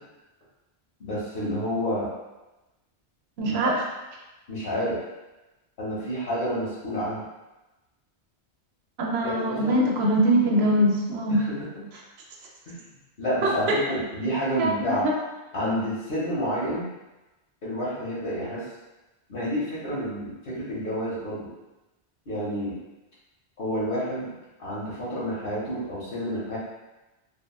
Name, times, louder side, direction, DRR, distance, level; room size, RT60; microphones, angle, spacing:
voice 1, 1.0-2.1 3.5-3.7 4.5-5.0 5.8-7.2 9.2-9.9 11.3-11.4 11.7-11.8 12.7-12.8 13.2-15.1 15.5-16.9 17.6-18.6 19.3-21.5 22.3-22.7 23.6-24.3 24.6-26.6, equal, 60° left, -8 dB, 1.2 m, -29 dB
voice 2, 3.4-3.8 9.0-11.4 13.4-13.8 14.6-15.1, right 1 dB, 80° right, -1 dB, 0.8 m, -23 dB
3.4 x 2.2 x 2.3 m, 1.1 s
omnidirectional pair, 1.1 m